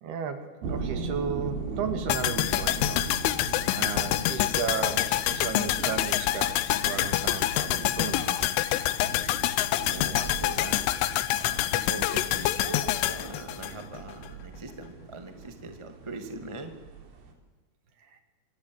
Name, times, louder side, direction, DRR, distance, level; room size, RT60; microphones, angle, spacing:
voice 1, 0.0-3.0 3.7-8.6 18.0-18.2, right 6 dB, 60° right, 7 dB, 3.8 m, -34 dB
sound 1, 0.6-17.3, right 4 dB, 85° right, 6.3 m, -39 dB
sound 2, 2.1-14.3 14.5-14.6, left 14 dB, 80° left, 3.5 m, -27 dB
voice 2, 9.9-10.8 11.3-16.7, right 2 dB, 15° right, 5 dB, 0.9 m, -41 dB
27.5 x 25.5 x 8.2 m, 1.3 s
omnidirectional pair, 5.8 m